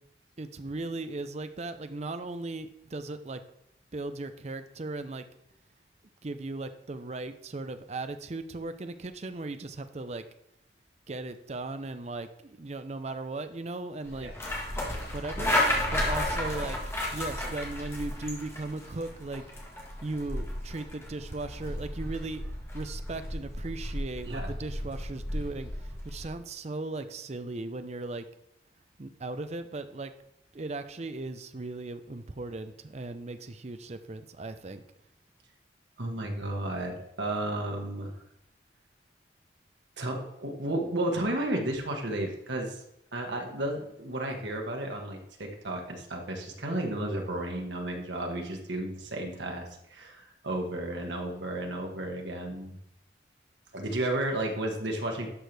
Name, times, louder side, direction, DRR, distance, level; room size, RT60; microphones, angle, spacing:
voice 1, 0.4-3.4 3.9-5.3 6.2-10.2 11.1-14.3 14.8-15.6 15.9-16.8 17.1-19.4 20.0-22.5 22.7-28.3 29.0-30.1 30.5-34.8, right 2 dB, 35° right, 9 dB, 0.6 m, -37 dB
sound 1, 14.1-26.3, left 1 dB, 15° left, 1.6 m, -33 dB
voice 2, 36.0-38.1 40.0-42.8 43.1-52.8 53.7-55.3, right 1 dB, 85° right, 1 dB, 1.6 m, -33 dB
11.5 x 6.1 x 3.4 m, 0.79 s
head